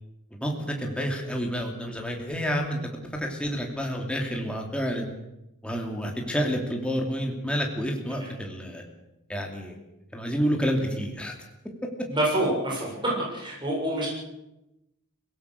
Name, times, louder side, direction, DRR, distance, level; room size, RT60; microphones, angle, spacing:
voice 1, 0.3-2.8 3.1-5.1 5.6-8.8 9.3-9.8 10.1-11.3, equal, 5° left, 1 dB, 3.0 m, -29 dB
voice 2, 12.1-12.9 13.3-14.1, right 1 dB, 20° right, -3 dB, 7.1 m, -26 dB
24.0 x 17.5 x 6.7 m, 0.92 s
head